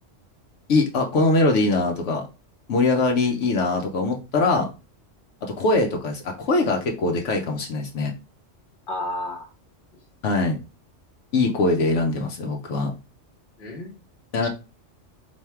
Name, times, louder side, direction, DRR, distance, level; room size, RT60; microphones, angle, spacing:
voice 1, 0.7-2.3 2.7-4.7 5.4-8.1 10.2-10.6 11.3-12.9 14.3-14.5, left 3 dB, 80° left, 1.1 m, -22 dB
voice 2, 8.9-9.5 9.9-10.0 13.6-14.0 14.4-14.5, left 1 dB, 45° left, 1.1 m, -32 dB
3.4 x 2.7 x 4.3 m
omnidirectional pair, 1.3 m